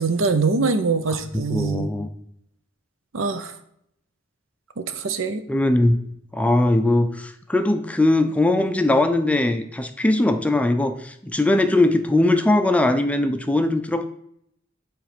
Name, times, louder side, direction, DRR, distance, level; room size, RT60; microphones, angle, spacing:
voice 1, 0.0-1.9 3.1-3.5 4.8-5.4, right 4 dB, 80° right, 10 dB, 0.6 m, -23 dB
voice 2, 1.3-2.1 5.5-6.0 6.3-14.0, left 2 dB, 5° left, 8 dB, 0.4 m, -20 dB
7.6 x 3.2 x 5.0 m, 0.73 s
head